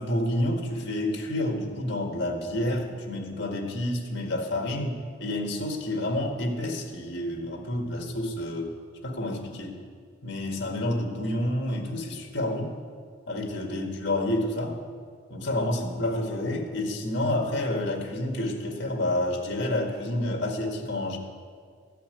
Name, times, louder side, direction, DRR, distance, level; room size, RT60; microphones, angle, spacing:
voice 1, 0.0-8.7 9.0-9.8 10.2-12.7 13.3-14.8 15.3-21.2, left 1 dB, 60° left, 2 dB, 1.9 m, -29 dB
14.5 x 5.8 x 9.2 m, 2.1 s
head